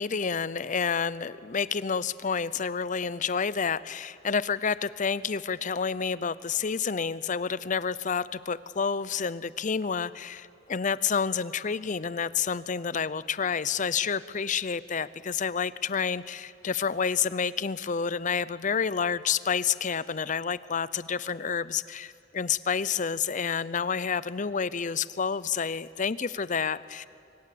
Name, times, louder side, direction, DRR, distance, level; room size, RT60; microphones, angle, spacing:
voice 1, 0.0-27.1, left 6 dB, 40° left, 17 dB, 0.6 m, -29 dB
25.0 x 25.0 x 8.5 m, 2.5 s
head